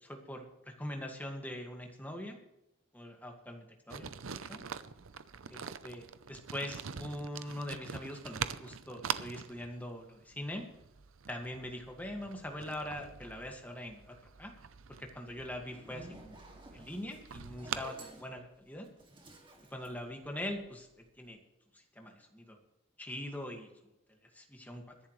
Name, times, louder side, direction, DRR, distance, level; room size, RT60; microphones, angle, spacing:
voice 1, 0.0-2.4 2.9-4.6 5.5-10.7 11.3-14.0 14.4-14.5 15.0-16.4 16.7-18.9 19.7-20.9 21.2-21.4 21.7-22.6 23.0-23.7 24.2-24.9, left 1 dB, 10° left, 2 dB, 1.9 m, -42 dB
sound 1, 3.9-17.9, right 7 dB, 75° right, 0.7 m, -44 dB
Zipper (clothing), 15.6-20.8, right 1 dB, 25° right, 2.2 m, -53 dB
22.5 x 11.0 x 3.2 m, 0.89 s
head